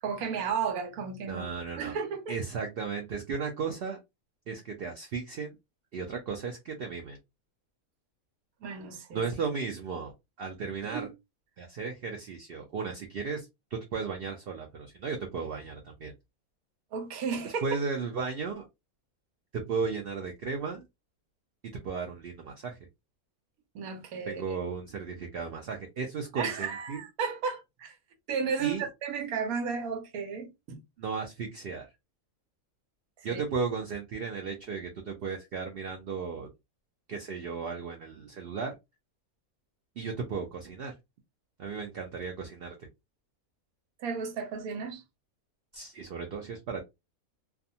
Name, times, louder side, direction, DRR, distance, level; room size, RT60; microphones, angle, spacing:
voice 1, 0.0-1.4 1.8-2.3 8.6-9.2 10.9-11.1 16.9-17.7 23.7-24.6 26.3-28.0 28.3-30.8 33.3-33.4 44.0-45.0, right 6 dB, 80° right, 1.1 m, -33 dB
voice 2, 1.3-1.9 2.3-4.0 4.5-5.5 5.9-7.2 9.1-10.1 10.4-11.1 11.6-16.1 17.6-18.7 19.5-20.8 21.8-22.8 24.3-27.0 28.6-28.9 31.0-31.9 33.2-36.5 37.1-38.8 40.0-40.9 41.6-42.9 45.7-46.8, right 5 dB, 65° right, 0.6 m, -35 dB
2.4 x 2.3 x 2.6 m
omnidirectional pair, 1.5 m